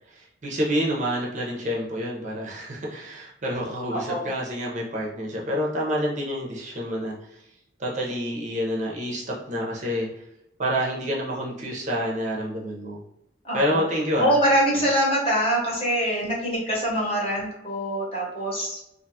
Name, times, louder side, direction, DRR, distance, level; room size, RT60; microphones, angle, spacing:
voice 1, 0.1-7.4 7.8-10.1 10.6-13.0 13.5-14.4, equal, 40° right, -3 dB, 0.6 m, -28 dB
voice 2, 3.9-4.3 13.4-13.8 14.2-18.8, equal, 30° left, -5 dB, 1.0 m, -24 dB
2.5 x 2.3 x 2.7 m, 0.83 s
head